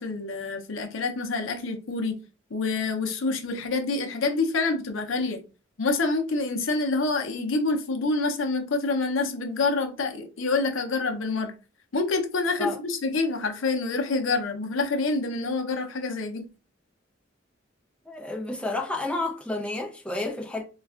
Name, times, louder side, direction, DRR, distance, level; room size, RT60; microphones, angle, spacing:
voice 1, 0.0-2.1 2.5-5.4 5.8-11.5 11.9-16.5, left 3 dB, 75° left, 0.6 m, -27 dB
voice 2, 18.1-20.6, left 2 dB, 5° left, 0.5 m, -30 dB
4.1 x 2.3 x 2.3 m
head